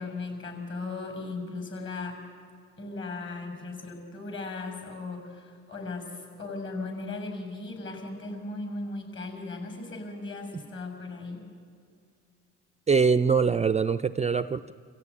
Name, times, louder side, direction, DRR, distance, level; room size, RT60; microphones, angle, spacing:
voice 1, 0.0-2.2 2.8-11.4, left 3 dB, 40° left, 5 dB, 6.9 m, -37 dB
voice 2, 12.9-14.7, right 5 dB, 20° right, 13 dB, 0.5 m, -23 dB
25.5 x 15.5 x 9.8 m, 2.3 s
cardioid pair, 90°, 30 cm